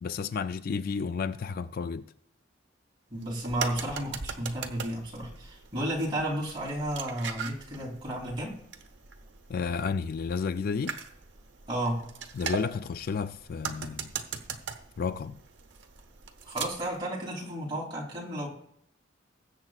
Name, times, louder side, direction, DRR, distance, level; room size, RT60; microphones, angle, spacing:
voice 1, 0.0-2.0 9.5-11.0 12.4-14.1 15.0-15.4, left 5 dB, 50° left, 0.3 m, -32 dB
voice 2, 3.1-8.6 11.7-12.1 16.4-18.5, right 1 dB, 25° right, 3.1 m, -33 dB
sound 1, 3.2-17.0, right 6 dB, 70° right, 1.0 m, -40 dB
20.5 x 7.8 x 2.4 m
head